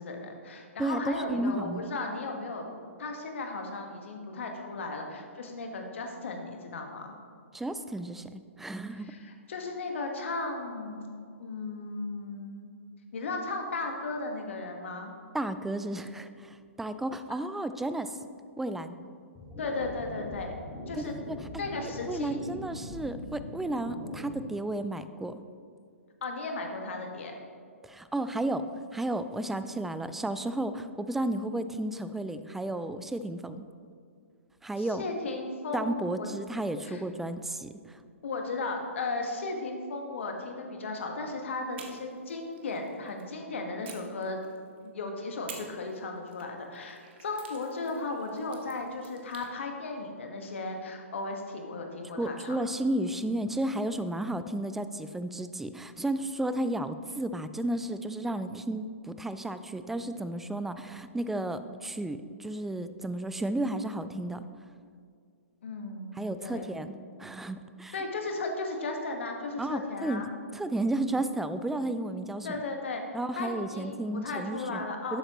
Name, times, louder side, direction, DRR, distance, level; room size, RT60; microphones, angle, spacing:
voice 1, 0.0-2.6 3.0-7.1 8.9-11.1 11.4-12.7 13.1-15.1 19.6-21.1 21.6-22.4 26.2-27.4 34.8-36.3 36.8-37.0 38.2-44.4 44.8-52.6 65.6-66.7 67.9-70.3 72.4-73.0 73.4-75.2, left 3 dB, 60° left, 3 dB, 1.5 m, -36 dB
voice 2, 0.8-1.8 7.5-9.1 15.3-18.2 18.6-19.0 20.9-21.4 22.1-25.4 27.8-33.6 34.6-35.0 35.7-38.0 52.2-64.4 66.2-67.9 69.6-72.6 73.1-74.8 75.1-75.2, right 1 dB, 5° right, 12 dB, 0.3 m, -33 dB
sound 1, 19.3-24.3, left 1 dB, 15° left, 1.8 m, -42 dB
sound 2, 41.7-43.3 43.8-44.9 45.5-49.5, right 6 dB, 50° right, 1.3 m, -51 dB
11.5 x 8.4 x 3.0 m, 2.2 s
figure-of-eight pair, 120°, 7 cm